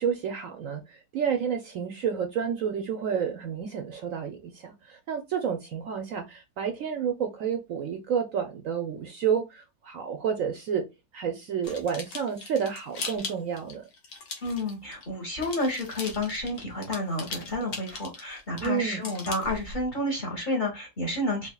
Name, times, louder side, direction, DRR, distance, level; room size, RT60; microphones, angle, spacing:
voice 1, 0.0-10.8 11.1-13.8 18.6-19.1, right 7 dB, 65° right, 1.0 m, -30 dB
sound 1, 11.6-15.1 15.4-19.9, left 3 dB, 65° left, 1.6 m, -39 dB
voice 2, 14.4-21.5, left 1 dB, 30° left, 1.5 m, -30 dB
4.3 x 4.0 x 2.3 m
omnidirectional pair, 1.7 m